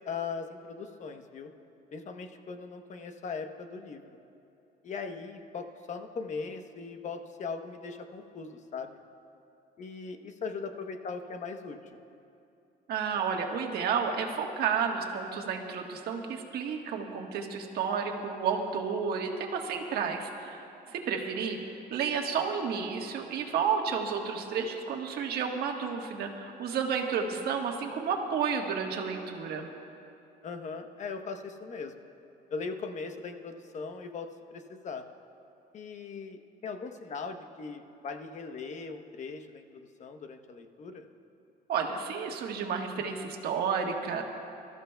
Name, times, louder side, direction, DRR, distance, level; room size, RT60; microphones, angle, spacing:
voice 1, 0.1-1.5 1.9-4.0 4.8-9.0 9.8-11.8 30.4-32.1 32.5-35.0 35.7-41.0, left 4 dB, 45° left, 6 dB, 1.0 m, -39 dB
voice 2, 12.9-20.6 20.9-21.6 21.9-29.7 41.7-44.2, right 6 dB, 70° right, 2 dB, 1.4 m, -31 dB
25.0 x 13.5 x 2.3 m, 2.7 s
cardioid pair, 110°, 17 cm